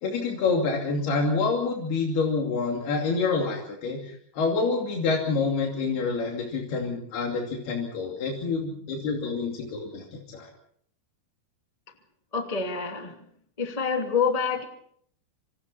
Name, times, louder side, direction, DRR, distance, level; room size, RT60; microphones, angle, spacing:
voice 1, 0.0-10.5, left 4 dB, 85° left, 0 dB, 4.7 m, -27 dB
voice 2, 12.3-13.2 13.6-14.6, left 5 dB, 10° left, 3 dB, 2.1 m, -27 dB
27.0 x 26.5 x 4.3 m, 0.64 s
omnidirectional pair, 4.4 m